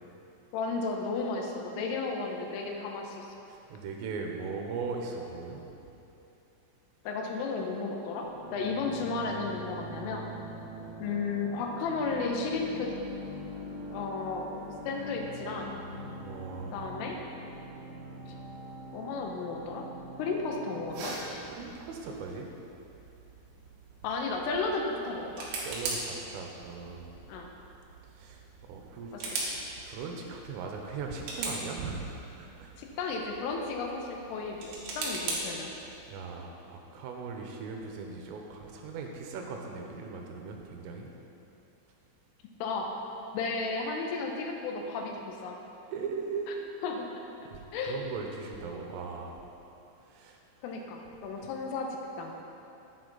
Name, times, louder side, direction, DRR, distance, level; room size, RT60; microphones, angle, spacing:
voice 1, 0.5-3.3 7.1-10.3 11.0-12.9 13.9-14.5 14.9-15.8 16.7-17.2 18.9-19.9 20.2-21.1 24.0-25.5 27.3-27.5 29.1-29.3 32.8-35.7 42.6-42.9 43.3-45.6 46.8-47.1 47.7-48.1 50.6-51.9 52.2-52.3, left 4 dB, 80° left, 1 dB, 3.4 m, -33 dB
voice 2, 3.5-5.6 16.2-16.9 21.4-22.5 25.5-27.1 28.1-28.4 28.7-29.5 29.8-32.7 36.1-41.1 45.9-46.5 47.5-49.4 50.1-50.4 51.4-51.5, right 4 dB, 80° right, 1 dB, 3.5 m, -39 dB
sound 1, 8.2-21.3, equal, 40° left, 3.3 m, -43 dB
sound 2, 20.9-36.1, right 2 dB, 65° right, 3.4 m, -41 dB
11.0 x 10.0 x 4.1 m, 2.8 s
omnidirectional pair, 5.9 m